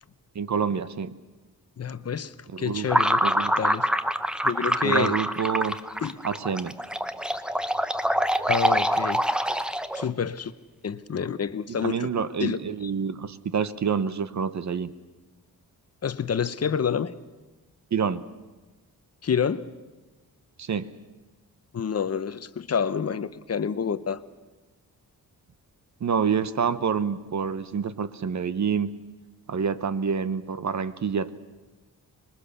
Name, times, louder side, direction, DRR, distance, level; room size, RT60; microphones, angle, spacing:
voice 1, 0.3-1.1 2.5-2.9 3.2-3.5 4.8-5.7 6.2-6.7 11.7-14.9 17.9-18.2 20.6-20.9 26.0-28.9 29.5-31.3, right 6 dB, 50° right, 14 dB, 1.0 m, -27 dB
voice 2, 1.8-3.2 3.6-3.9 4.4-5.2 6.0-6.2 8.5-9.2 9.9-10.5 10.8-12.1 12.4-12.9 16.0-17.2 19.2-19.7 21.7-24.2, left 7 dB, 40° left, 14 dB, 0.8 m, -28 dB
sound 1, 2.9-10.1, equal, ahead, 0.7 m, -25 dB
25.5 x 21.5 x 6.9 m, 1.2 s
wide cardioid pair, 145°, 37 cm